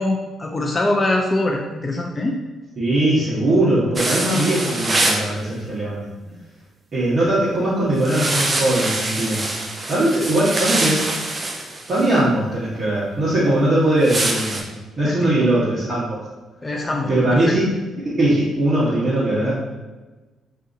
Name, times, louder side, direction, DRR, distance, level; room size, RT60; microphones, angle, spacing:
voice 1, 0.0-2.4 6.3-6.4 15.0-15.3 16.6-17.5, left 2 dB, 25° left, 1 dB, 0.4 m, -23 dB
voice 2, 2.8-6.1 6.9-9.4 9.9-11.0 11.9-14.6 15.0-16.2 17.1-17.6 18.0-19.5, right 1 dB, 45° right, -10 dB, 1.0 m, -20 dB
sound 1, 4.0-5.3 8.0-12.1 14.0-14.6, right 2 dB, 30° right, 0.5 m, -24 dB
2.7 x 2.5 x 3.7 m, 1.2 s
cardioid pair, 90°, 0 cm